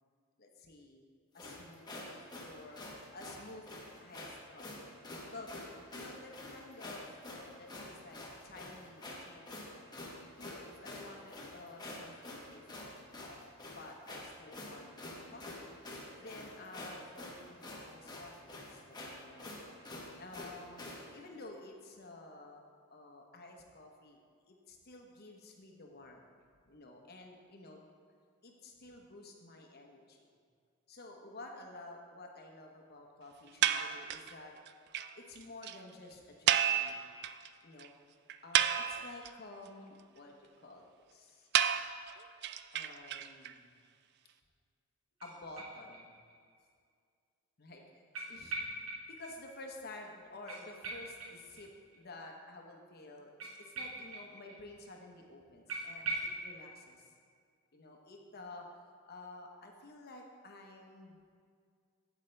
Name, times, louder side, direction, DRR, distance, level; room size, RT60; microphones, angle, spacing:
voice 1, 0.4-1.0 1.3-2.8 3.1-3.6 4.0-4.9 5.3-5.5 5.9-9.4 10.4-14.9 15.3-15.7 16.2-19.5 20.2-22.6 22.9-24.2 24.5-26.3 26.7-27.9 28.4-30.2 30.9-34.5 35.2-37.0 37.6-37.9 38.4-41.5 42.7-43.7 45.2-46.1 47.6-47.8 48.3-48.6 49.1-51.7 51.9-57.1 57.7-58.7 59.1-61.2, left 2 dB, 50° left, 2 dB, 1.0 m, -51 dB
sound 1, 1.4-21.1, left 1 dB, 20° left, 1.1 m, -47 dB
sound 2, 33.6-34.3 34.7-34.8 34.9-35.1 35.4-35.5 35.6-35.8 36.5-37.5 37.8-37.9 38.3-39.3 41.5-43.5, right 10 dB, 55° right, 0.3 m, -31 dB
sound 3, 45.2-46.3 46.7-46.8 48.1-49.3 49.6-49.7 50.0-50.1 50.5-52.0 53.4-54.6 54.8-54.9 55.2-55.3 55.7-56.4, right 2 dB, 70° right, 1.3 m, -42 dB
8.5 x 8.0 x 3.3 m, 2.1 s
head